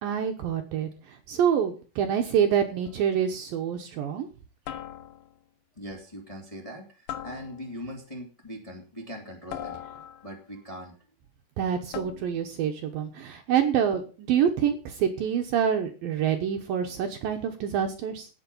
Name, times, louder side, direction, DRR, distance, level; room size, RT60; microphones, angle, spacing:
voice 1, 0.0-4.3 11.6-18.3, right 8 dB, 70° right, 5 dB, 2.5 m, -26 dB
sound 1, 2.9-3.2 4.7-5.4 7.1-7.9 9.5-10.4 11.9-12.5, left 11 dB, 75° left, 2.9 m, -40 dB
voice 2, 5.8-9.8 10.2-11.0, equal, 10° left, 0 dB, 2.0 m, -41 dB
16.5 x 7.0 x 5.3 m, 0.36 s
omnidirectional pair, 4.9 m